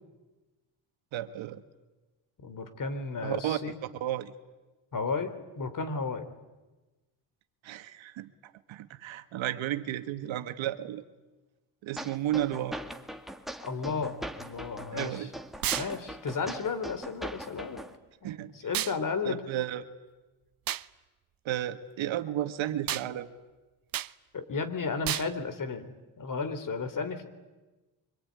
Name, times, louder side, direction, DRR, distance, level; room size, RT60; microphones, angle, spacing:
voice 1, 1.1-1.6 3.2-3.6 4.0-4.3 7.6-11.0 11.8-12.8 14.9-15.3 18.2-18.5 19.2-19.8 21.4-23.3, right 12 dB, 70° right, 10 dB, 1.7 m, -33 dB
voice 2, 2.4-3.7 4.9-6.3 13.6-15.3 15.7-17.8 18.2-18.4 18.6-19.4 24.3-27.3, left 4 dB, 40° left, 11 dB, 3.5 m, -33 dB
sound 1, 12.0-17.9, right 1 dB, ahead, 2.0 m, -41 dB
sound 2, 15.6-15.9 18.7-19.0 20.7-20.9 22.9-23.1 23.9-24.1 25.1-25.3, right 12 dB, 45° right, 0.8 m, -31 dB
25.0 x 22.0 x 9.7 m, 1.2 s
cardioid pair, 85°, 48 cm